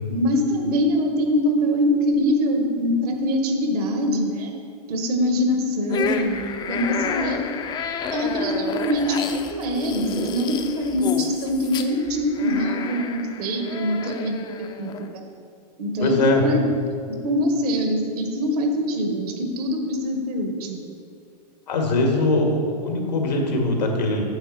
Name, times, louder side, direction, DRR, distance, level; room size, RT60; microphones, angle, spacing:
voice 1, 0.1-4.5 4.9-6.4 6.7-7.4 8.1-14.4 14.8-15.2 15.8-16.7 17.2-20.8, equal, 65° right, 3 dB, 1.6 m, -23 dB
sound 1, 5.9-15.1, left 5 dB, 20° left, 0.5 m, -31 dB
voice 2, 16.0-16.4 21.7-24.2, left 2 dB, 85° left, 1 dB, 1.8 m, -21 dB
9.0 x 6.9 x 4.2 m, 2.4 s
hypercardioid pair, 125°, 21 cm